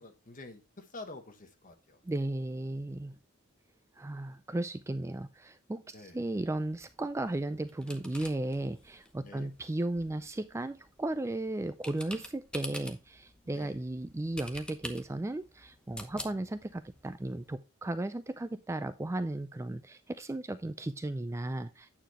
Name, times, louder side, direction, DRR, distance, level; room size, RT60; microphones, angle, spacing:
voice 1, 0.0-2.0 5.9-6.2 9.2-9.5 13.4-13.8 16.0-16.1, left 2 dB, 40° left, 1.3 m, -48 dB
voice 2, 2.0-3.2 4.0-22.0, right 2 dB, 15° right, 0.3 m, -35 dB
sound 1, 6.5-17.5, left 1 dB, 5° left, 0.9 m, -49 dB
9.1 x 6.7 x 2.9 m
head